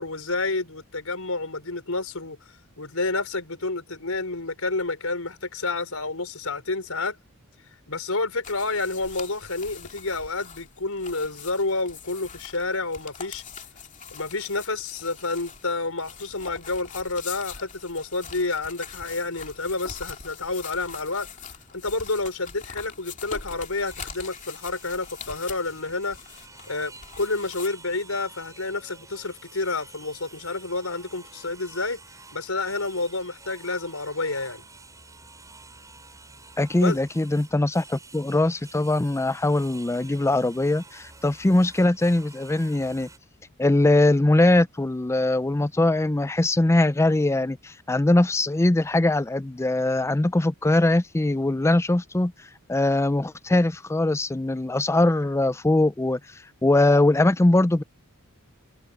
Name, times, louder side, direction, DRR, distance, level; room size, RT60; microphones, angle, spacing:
voice 1, 0.0-2.4 2.8-7.2 7.9-13.4 14.1-21.3 21.7-26.2 26.7-32.0 32.3-34.7 36.8-37.0, left 3 dB, 75° left, 5.3 m, -29 dB
sound 1, 8.4-27.7, left 6 dB, 35° left, 2.6 m, -43 dB
sound 2, 23.8-43.2, right 3 dB, 15° right, 6.4 m, -49 dB
voice 2, 36.6-43.1 43.6-52.3 52.7-56.2 56.6-57.8, left 2 dB, 15° left, 0.4 m, -21 dB
head